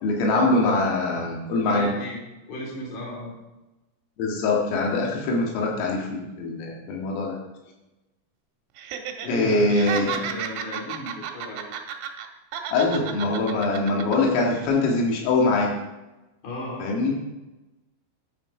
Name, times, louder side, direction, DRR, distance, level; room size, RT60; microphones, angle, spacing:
voice 1, 0.0-1.9 4.2-7.4 9.3-10.1 12.7-15.8 16.8-17.2, left 2 dB, 80° left, -1 dB, 4.5 m, -23 dB
voice 2, 1.6-3.3 9.2-11.6 16.4-17.2, equal, 40° left, -3 dB, 4.6 m, -35 dB
Laughter, 8.8-9.3 9.6-12.3 12.5-14.2 14.5-14.7, right 9 dB, 75° right, 3.4 m, -32 dB
11.0 x 11.0 x 4.9 m, 1.0 s
omnidirectional pair, 5.9 m